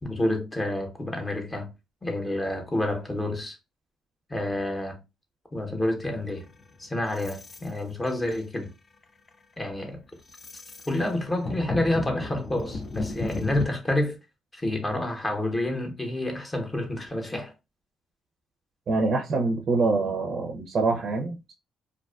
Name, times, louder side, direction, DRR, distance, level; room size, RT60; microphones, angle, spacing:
voice 1, 0.0-1.7 2.0-3.6 4.3-5.0 5.5-6.5 6.8-8.7 9.6-10.0 10.9-14.2 14.5-17.5, left 1 dB, 20° left, 0.8 m, -28 dB
sound 1, 6.1-7.7 8.0-8.5 9.0-9.3 9.7-13.7, left 2 dB, 35° left, 0.3 m, -35 dB
voice 2, 18.9-21.5, right 3 dB, 55° right, 0.4 m, -25 dB
2.4 x 2.2 x 2.3 m
cardioid pair, 90°, 0 cm